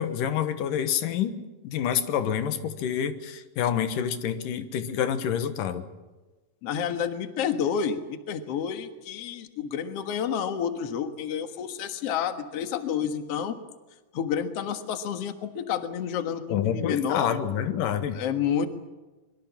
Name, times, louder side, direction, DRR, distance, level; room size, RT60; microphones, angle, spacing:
voice 1, 0.0-1.4 1.6-5.8 16.5-18.2, left 9 dB, 90° left, 10 dB, 2.9 m, -27 dB
voice 2, 6.6-13.6 14.1-17.3 18.1-18.7, left 8 dB, 55° left, 8 dB, 2.3 m, -29 dB
24.5 x 23.0 x 7.4 m, 1.2 s
omnidirectional pair, 3.7 m